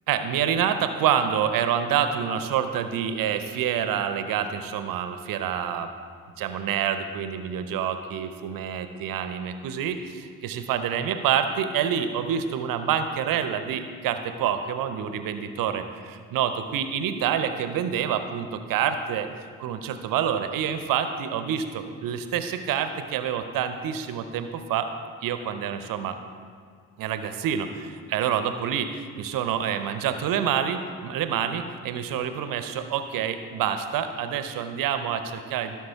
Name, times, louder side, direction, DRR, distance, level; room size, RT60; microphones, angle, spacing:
voice 1, 0.1-5.9 6.4-19.3 19.6-24.9 25.2-26.2 27.0-35.8, right 8 dB, 60° right, 9 dB, 0.8 m, -27 dB
16.0 x 6.3 x 3.6 m, 2.1 s
figure-of-eight pair, 40°, 39 cm